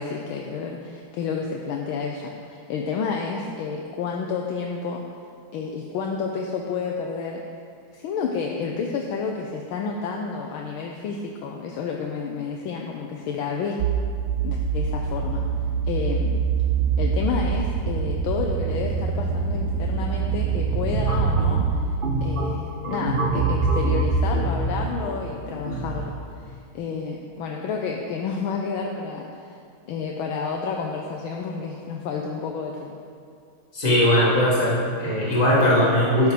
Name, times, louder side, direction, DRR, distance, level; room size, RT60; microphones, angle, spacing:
voice 1, 0.0-5.0 5.5-7.4 7.9-13.8 14.4-15.5 15.8-16.4 17.0-21.7 22.2-26.2 26.4-29.6 29.9-33.0, left 5 dB, 75° left, 1 dB, 1.5 m, -30 dB
sound 1, 13.8-21.7, right 6 dB, 70° right, 1.0 m, -25 dB
sound 2, 20.6-26.0, right 2 dB, 35° right, 0.9 m, -25 dB
voice 2, 33.7-36.3, left 1 dB, 40° left, -6 dB, 2.8 m, -19 dB
11.5 x 6.7 x 5.0 m, 2.3 s
omnidirectional pair, 2.3 m